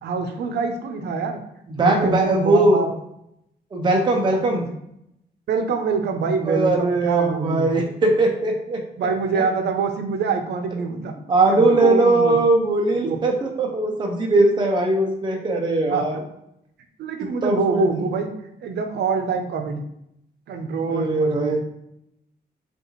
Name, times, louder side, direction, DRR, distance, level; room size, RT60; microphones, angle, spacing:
voice 1, 0.0-1.4 1.8-2.9 4.3-4.7 5.5-7.8 9.0-11.1 11.5-12.4 13.1-13.2 15.9-16.2 17.0-18.3 18.6-19.8 20.5-21.6, right 5 dB, 85° right, 5 dB, 0.6 m, -25 dB
voice 2, 1.7-2.9 3.7-4.6 6.4-8.8 9.3-9.4 11.3-16.2 17.4-18.0 20.9-21.6, right 2 dB, 25° right, 1 dB, 0.5 m, -20 dB
5.1 x 2.4 x 3.0 m, 0.78 s
wide cardioid pair, 175°, 17 cm